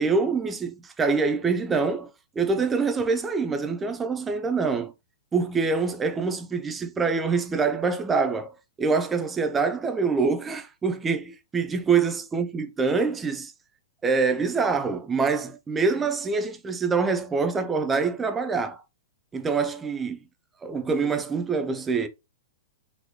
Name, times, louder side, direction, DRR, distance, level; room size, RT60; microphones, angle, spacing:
voice 1, 0.0-2.1 2.4-4.9 5.3-13.5 14.0-18.8 19.3-20.2 20.6-22.1, right 4 dB, 10° right, 0.5 m, -25 dB
4.0 x 3.1 x 4.1 m
supercardioid pair, 175°, 0 cm